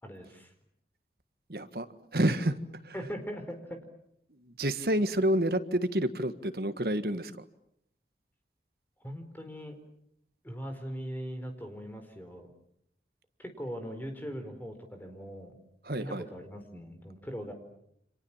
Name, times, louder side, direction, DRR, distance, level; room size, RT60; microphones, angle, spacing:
voice 1, 0.0-0.5 2.9-3.8 9.0-9.8 10.4-12.5 13.4-15.5 16.0-17.5, equal, 10° left, 6 dB, 4.5 m, -40 dB
voice 2, 1.5-1.9 2.1-2.6 2.9-3.0 4.5-7.3 15.9-16.3, right 1 dB, 55° right, 11 dB, 1.7 m, -28 dB
30.0 x 27.0 x 7.4 m, 0.73 s
head